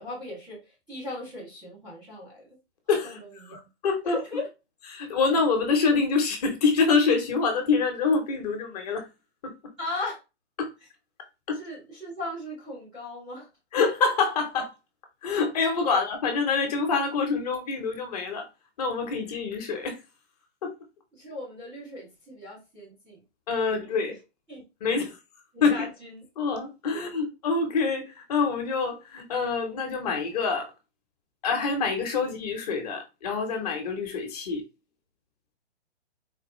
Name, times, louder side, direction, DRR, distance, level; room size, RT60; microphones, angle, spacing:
voice 1, 0.0-2.5 3.0-3.6 4.0-4.5 9.8-10.2 11.6-13.5 15.9-16.0 21.1-23.2 23.6-24.2 24.5-25.1 25.5-26.2, left 2 dB, ahead, 0.4 m, -38 dB
voice 2, 2.9-3.2 3.5-4.2 4.9-9.1 9.4-9.5 10.6-10.7 11.5-11.6 13.7-14.7 15.2-18.5 18.8-20.0 20.6-20.7 23.5-24.1 24.8-25.2 25.6-25.8 26.4-30.7 31.4-34.6, left 4 dB, 35° left, 1.0 m, -26 dB
4.3 x 2.3 x 3.1 m
hypercardioid pair, 145°, 35 cm